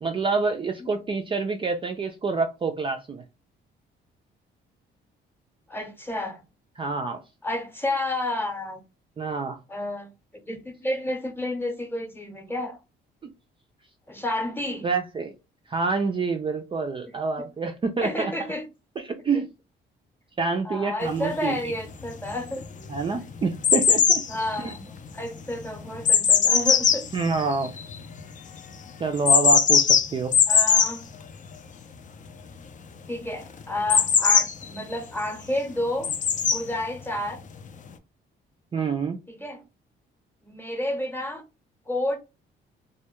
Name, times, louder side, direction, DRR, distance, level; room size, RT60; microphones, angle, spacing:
voice 1, 0.0-3.2 6.8-7.2 9.2-9.6 14.8-15.3 15.7-18.3 19.0-19.5 20.4-21.6 22.9-24.2 24.6-24.7 27.1-27.7 29.0-30.3 38.7-39.2, right 4 dB, 25° right, 0.3 m, -27 dB
voice 2, 5.7-6.4 7.4-8.8 9.7-12.8 14.1-14.9 17.1-17.5 18.0-18.7 19.3-19.4 20.6-22.6 24.3-24.8 25.1-27.1 30.5-31.1 33.1-36.2 36.5-37.4 39.3-39.6 40.4-41.4 41.9-42.2, left 1 dB, 10° left, 0.8 m, -30 dB
sound 1, 21.3-21.4 22.0-22.6 22.9-28.2 29.2-31.0 33.9-35.0 36.0-36.6 37.6-37.7, left 7 dB, 40° left, 0.4 m, -20 dB
2.1 x 2.1 x 2.9 m
cardioid pair, 90°, 20 cm